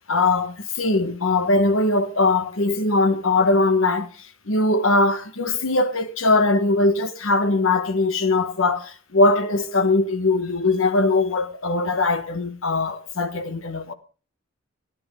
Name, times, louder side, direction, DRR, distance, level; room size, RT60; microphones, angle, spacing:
voice 1, 0.1-13.9, left 2 dB, 85° left, 1.2 m, -21 dB
14.0 x 10.5 x 3.6 m
head